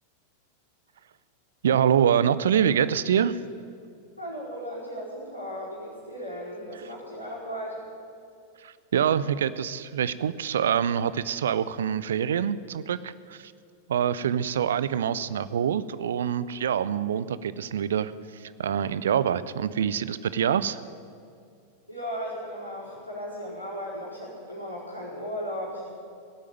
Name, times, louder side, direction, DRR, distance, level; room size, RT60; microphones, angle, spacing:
voice 1, 1.6-3.4 8.6-13.5 13.9-18.1 18.4-20.8, right 8 dB, 65° right, 16 dB, 0.5 m, -25 dB
voice 2, 4.2-7.9 21.9-25.9, equal, 90° left, -6 dB, 4.6 m, -36 dB
17.5 x 8.4 x 9.2 m, 2.4 s
figure-of-eight pair, 90°, 0 cm